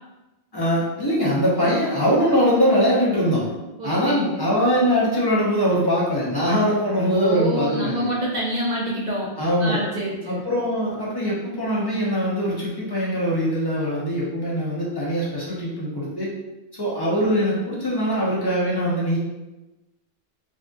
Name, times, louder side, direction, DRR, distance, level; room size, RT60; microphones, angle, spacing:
voice 1, 0.5-3.5 3.8-8.1 9.4-9.8 10.3-16.3 16.8-19.2, equal, 30° left, -7 dB, 0.5 m, -22 dB
voice 2, 3.8-4.2 7.1-9.3 9.6-10.4, right 1 dB, 55° right, -5 dB, 0.5 m, -26 dB
2.5 x 2.4 x 2.2 m, 1.1 s
omnidirectional pair, 1.1 m